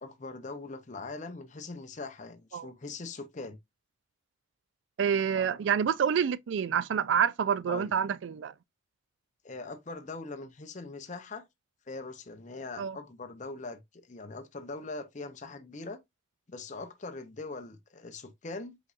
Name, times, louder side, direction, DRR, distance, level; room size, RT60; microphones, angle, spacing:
voice 1, 0.0-3.6 5.3-5.6 7.7-7.9 9.4-11.5 11.9-13.8 14.1-16.0 16.5-18.8, left 3 dB, 40° left, 0.7 m, -41 dB
voice 2, 5.0-8.5 12.8-13.0, right 7 dB, 70° right, 0.3 m, -27 dB
5.2 x 4.0 x 2.5 m
head